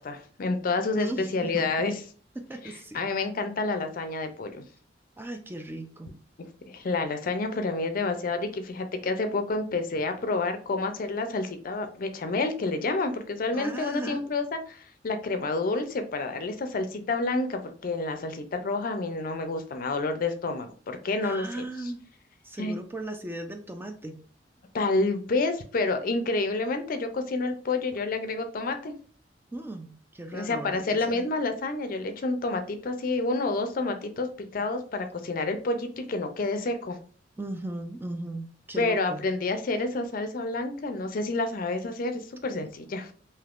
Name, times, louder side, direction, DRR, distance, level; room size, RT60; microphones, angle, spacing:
voice 1, 0.0-1.9 2.9-4.6 6.7-21.5 22.6-22.7 24.7-28.9 30.3-37.0 38.8-43.1, left 3 dB, 50° left, 7 dB, 0.4 m, -29 dB
voice 2, 1.0-1.7 2.4-3.0 5.2-6.1 13.5-14.2 21.2-22.0 22.4-24.2 29.5-31.3 37.4-39.2, right 1 dB, 10° right, 5 dB, 0.3 m, -37 dB
3.5 x 2.7 x 2.4 m, 0.43 s
head